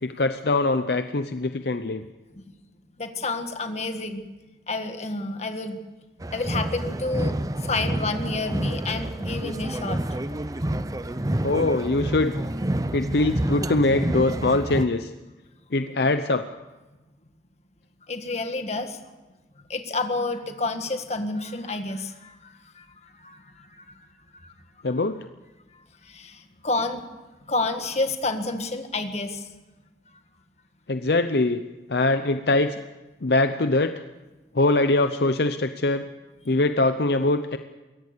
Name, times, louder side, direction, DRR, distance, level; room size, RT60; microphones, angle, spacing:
voice 1, 0.0-2.0 11.4-12.3 12.9-15.1 15.7-16.4 24.8-25.2 30.9-31.6 31.9-32.7 33.2-34.0 34.5-36.0 36.5-37.6, left 2 dB, 60° left, 9 dB, 0.7 m, -22 dB
voice 2, 3.0-4.3 4.7-5.8 6.3-10.0 18.1-19.0 19.7-24.0 24.3-24.5 26.0-27.1 27.5-29.5, left 3 dB, 35° left, 7 dB, 1.7 m, -30 dB
sound 1, 6.2-14.8, right 1 dB, 20° right, 0.6 m, -28 dB
22.5 x 17.5 x 6.8 m, 1.2 s
head